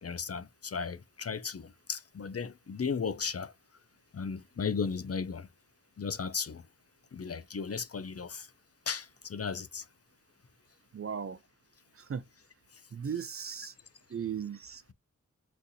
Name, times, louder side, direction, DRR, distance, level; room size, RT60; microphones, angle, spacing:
voice 1, 0.0-3.5 4.1-5.5 6.0-6.6 7.1-8.5 8.9-9.8, left 5 dB, 45° left, 0.5 m, -35 dB
voice 2, 10.9-11.4 12.1-12.2 12.9-13.7 14.1-14.9, right 7 dB, 45° right, 0.4 m, -37 dB
4.0 x 2.5 x 2.7 m
cardioid pair, 45°, 34 cm